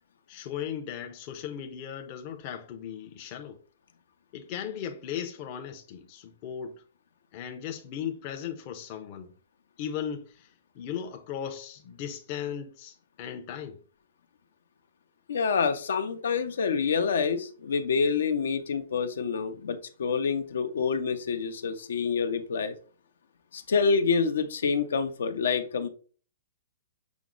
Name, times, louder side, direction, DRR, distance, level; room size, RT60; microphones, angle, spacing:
voice 1, 0.3-3.6 4.3-6.8 7.3-9.3 9.8-10.5 10.7-13.8, left 9 dB, 30° left, 0.5 m, -37 dB
voice 2, 15.3-22.7 23.5-25.9, left 5 dB, 75° left, 0.6 m, -27 dB
6.0 x 2.0 x 3.7 m
hypercardioid pair, 165°, 0 cm